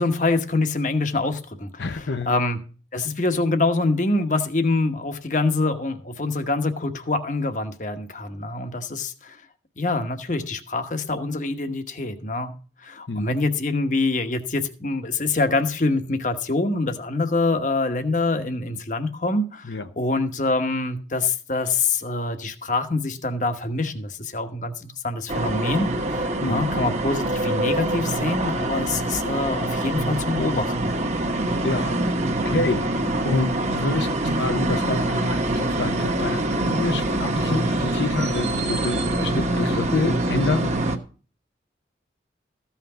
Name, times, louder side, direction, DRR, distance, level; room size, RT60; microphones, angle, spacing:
voice 1, 0.0-2.6 2.9-9.4 9.8-12.5 12.8-30.9, left 3 dB, 45° left, 1.1 m, -25 dB
voice 2, 1.8-2.3 13.1-13.3 19.6-19.9 26.4-26.7 31.2-31.4 31.6-32.0 32.5-33.0 33.2-40.7, left 3 dB, 80° left, 0.8 m, -27 dB
sound 1, 25.3-41.0, right 1 dB, 40° right, 1.1 m, -25 dB
14.5 x 5.8 x 5.6 m
head